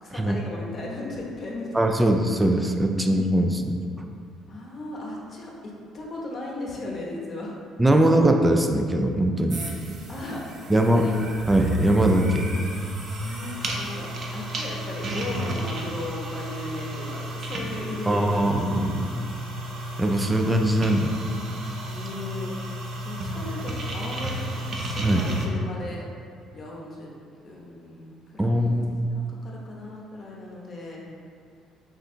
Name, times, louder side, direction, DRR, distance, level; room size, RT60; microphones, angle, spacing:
voice 1, 0.0-1.8 2.9-3.5 4.5-7.6 10.1-10.4 10.7-11.1 13.2-18.4 21.9-22.7 23.0-26.1 26.5-27.1 27.4-28.7 29.1-31.0, left 2 dB, 45° left, -3 dB, 0.8 m, -37 dB
voice 2, 1.7-3.8 7.8-9.6 10.7-11.1 11.5-12.5 18.1-19.1 20.0-21.2 25.0-25.3 28.4-29.0, right 1 dB, 10° right, 4 dB, 0.3 m, -21 dB
sound 1, 9.5-25.5, right 1 dB, 50° right, 0.6 m, -32 dB
3.8 x 2.4 x 4.3 m, 2.2 s
cardioid pair, 90°, 0 cm